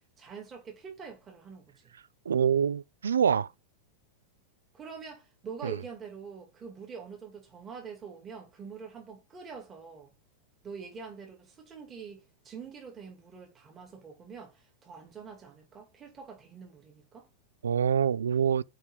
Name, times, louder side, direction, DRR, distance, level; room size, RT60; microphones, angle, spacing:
voice 1, 0.2-1.7 4.7-10.1 10.6-17.3, right 6 dB, 20° right, 2.4 m, -45 dB
voice 2, 2.3-3.5 5.6-5.8 17.6-18.6, right 7 dB, 70° right, 0.3 m, -25 dB
5.4 x 5.3 x 4.9 m
figure-of-eight pair, 90°, 0 cm